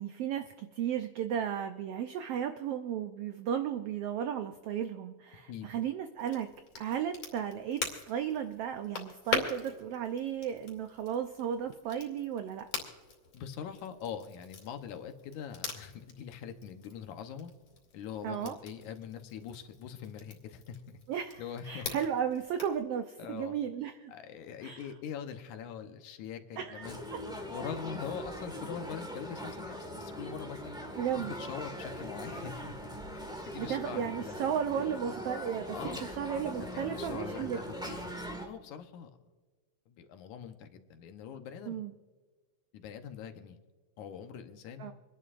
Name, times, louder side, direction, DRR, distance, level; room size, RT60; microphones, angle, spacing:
voice 1, 0.0-6.5 6.7-12.7 18.2-18.6 21.1-24.1 24.6-24.9 26.6-27.2 31.0-31.3 33.6-37.6 41.7-41.9 44.8-44.9, right 8 dB, 80° right, 8 dB, 1.3 m, -34 dB
Crackle, 6.2-22.8, left 5 dB, 50° left, 3.3 m, -43 dB
voice 2, 13.3-17.5 17.9-21.0 21.4-21.9 23.2-23.5 24.1-27.0 27.5-30.8 31.2-32.8 33.1-34.4 35.7-36.1 36.7-37.7 37.9-39.2 39.9-41.8 42.7-43.6 44.0-44.9, left 8 dB, 80° left, 7 dB, 2.4 m, -43 dB
sound 1, 26.8-38.5, equal, 5° right, 0.3 m, -41 dB
27.0 x 11.0 x 2.5 m, 1.4 s
omnidirectional pair, 3.5 m